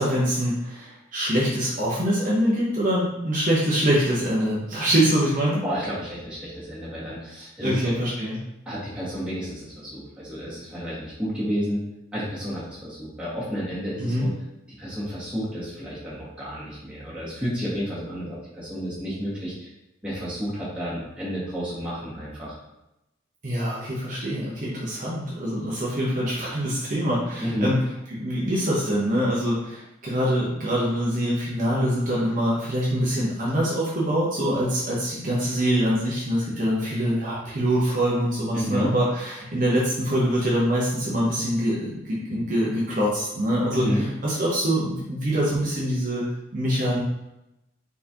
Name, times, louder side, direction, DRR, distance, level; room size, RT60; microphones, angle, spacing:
voice 1, 0.0-5.6 7.6-8.4 14.0-14.3 23.4-27.8 28.2-46.2 46.5-47.0, equal, 45° right, -6 dB, 0.9 m, -24 dB
voice 2, 5.6-7.8 8.6-11.8 12.1-14.3 14.8-19.7 20.0-22.6 27.4-27.7 38.5-38.9 43.7-44.1, equal, 5° right, -10 dB, 1.7 m, -31 dB
4.4 x 4.0 x 2.9 m, 0.88 s
head